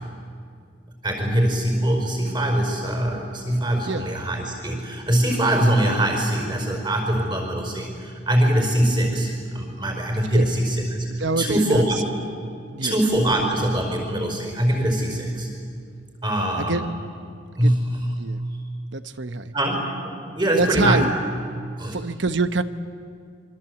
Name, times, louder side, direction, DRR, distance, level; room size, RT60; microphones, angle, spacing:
voice 1, 1.0-12.1 12.8-15.5 16.2-16.9 17.6-18.1 19.5-21.1 21.8-22.0, right 1 dB, 25° right, 2 dB, 5.0 m, -23 dB
voice 2, 11.2-11.8 12.6-12.9 16.6-16.8 17.6-17.7 18.2-18.4 18.9-19.5 20.6-21.1 21.9-22.6, right 3 dB, 75° right, 10 dB, 1.0 m, -25 dB
27.0 x 24.5 x 8.1 m, 2.3 s
head